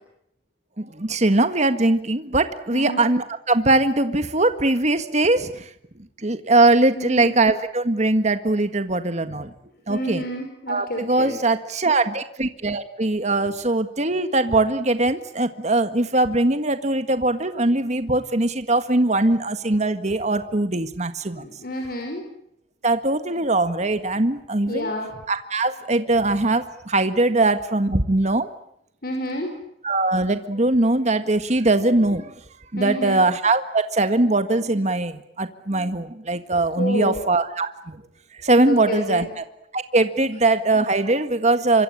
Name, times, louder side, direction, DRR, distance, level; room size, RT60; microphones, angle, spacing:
voice 1, 0.8-5.7 6.2-9.5 9.9-10.2 10.7-21.4 22.8-24.9 25.3-28.5 29.8-32.3 32.7-38.0 38.4-39.4 39.7-41.8, right 2 dB, 40° right, 9 dB, 1.7 m, -21 dB
voice 2, 2.7-3.0 6.9-7.3 9.9-11.4 21.4-22.2 24.7-25.1 29.0-29.5 32.8-33.2 36.8-37.2 38.6-39.3 40.2-40.3, left 1 dB, 55° left, 3 dB, 5.9 m, -29 dB
27.0 x 25.0 x 8.8 m, 0.74 s
head